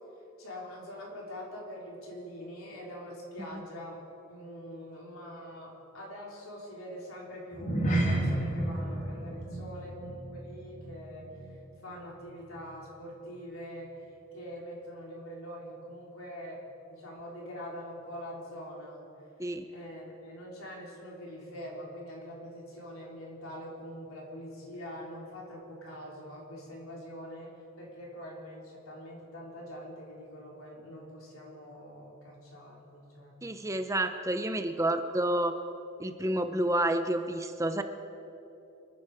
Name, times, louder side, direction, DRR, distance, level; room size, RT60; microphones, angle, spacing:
voice 1, 0.4-4.0 4.3-11.3 11.8-14.0 14.3-19.1 19.7-33.4, equal, 85° left, -3 dB, 4.0 m, -44 dB
sound 1, 7.5-12.2 12.4-12.7 13.2-13.3, right 1 dB, 35° left, 2.4 m, -32 dB
voice 2, 33.4-35.5 36.0-37.8, right 1 dB, 15° right, 8 dB, 0.6 m, -29 dB
26.5 x 10.0 x 5.0 m, 2.9 s
head